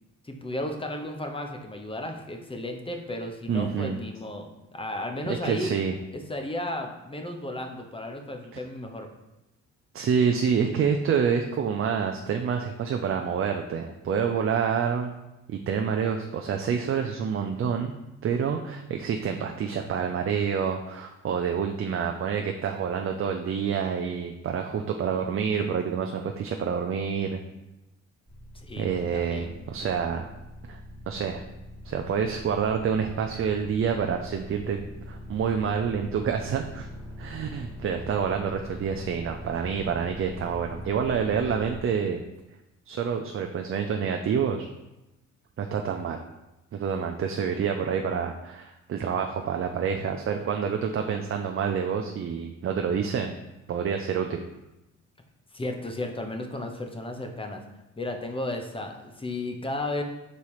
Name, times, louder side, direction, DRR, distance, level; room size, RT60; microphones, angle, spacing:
voice 1, 0.2-5.7 6.3-9.1 28.5-29.5 55.5-57.6 58.0-60.0, left 1 dB, 20° left, 4 dB, 0.9 m, -34 dB
voice 2, 3.5-4.0 5.3-5.9 9.9-15.1 15.5-17.9 18.2-27.4 28.8-30.3 30.7-30.8 31.1-31.4 31.8-34.8 35.1-36.9 37.2-42.2 42.9-44.7 45.6-46.2 46.7-53.3 53.7-54.4, right 7 dB, 45° right, 4 dB, 0.6 m, -27 dB
sound 1, 28.3-41.8, left 1 dB, 10° right, 2.3 m, -42 dB
5.4 x 4.2 x 4.9 m, 0.97 s
cardioid pair, 90°, 30 cm